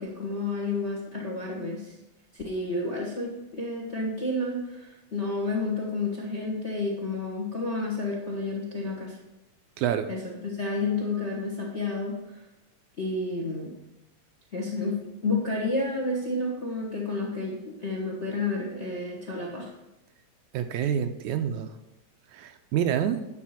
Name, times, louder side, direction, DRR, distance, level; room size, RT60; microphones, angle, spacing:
voice 1, 0.0-1.9 2.3-9.2 10.1-12.4 13.0-13.7 14.5-15.0 15.2-19.7, left 2 dB, 35° left, -1 dB, 1.1 m, -30 dB
voice 2, 9.8-10.1 20.5-21.7 22.3-23.3, right 9 dB, 80° right, 9 dB, 1.9 m, -27 dB
10.0 x 4.2 x 7.4 m, 0.95 s
omnidirectional pair, 3.6 m